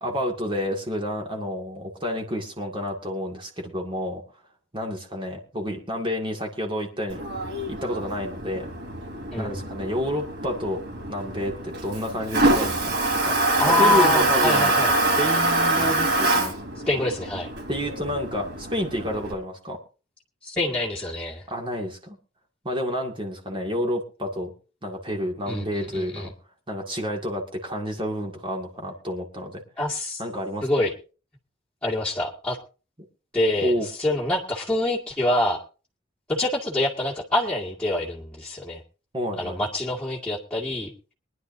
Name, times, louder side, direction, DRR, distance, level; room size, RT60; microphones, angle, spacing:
voice 1, 0.0-4.2 4.7-7.2 7.7-8.7 9.4-10.8 11.1-13.4 13.7-14.7 15.0-16.5 17.7-19.8 21.5-22.2 22.6-24.5 24.8-26.3 26.7-29.6 30.2-30.7 33.6-33.9 39.1-39.6, equal, 25° right, 1 dB, 2.1 m, -29 dB
Toilet flush, 7.1-19.3, right 2 dB, 60° right, 4.1 m, -25 dB
voice 2, 9.3-9.6 13.6-14.9 16.9-17.5 20.4-21.4 25.5-26.3 29.8-30.2 30.6-30.9 31.8-32.6 33.3-35.6 36.3-38.8 39.4-40.9, left 1 dB, 5° left, -7 dB, 2.1 m, -25 dB
23.5 x 10.5 x 2.7 m, 0.34 s
head